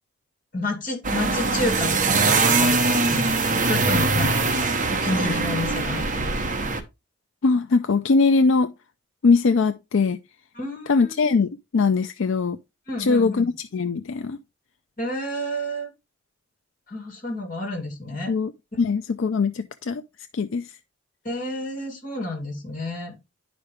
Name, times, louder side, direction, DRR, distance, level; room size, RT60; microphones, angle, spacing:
voice 1, 0.5-4.5 4.9-6.7 10.5-11.1 12.9-13.5 15.0-15.9 16.9-18.3 21.2-23.2, left 1 dB, 40° left, 2.7 m, -30 dB
sound 1, 1.0-6.8, right 3 dB, 40° right, 1.0 m, -22 dB
voice 2, 7.4-8.7 9.2-10.2 10.9-12.6 13.0-14.4 18.3-18.5 18.8-20.0 20.3-20.7, left 4 dB, 70° left, 0.4 m, -21 dB
10.5 x 5.1 x 3.3 m
head